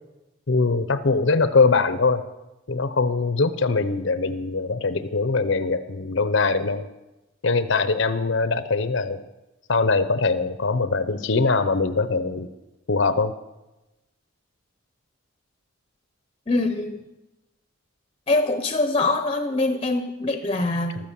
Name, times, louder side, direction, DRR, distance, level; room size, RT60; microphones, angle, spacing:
voice 1, 0.5-2.3 2.7-6.9 7.4-9.2 9.7-12.5 12.9-13.3, left 4 dB, 60° left, 11 dB, 0.7 m, -22 dB
voice 2, 16.5-17.0 18.3-21.0, left 2 dB, 25° left, 8 dB, 0.8 m, -23 dB
13.5 x 13.0 x 7.4 m, 1.0 s
head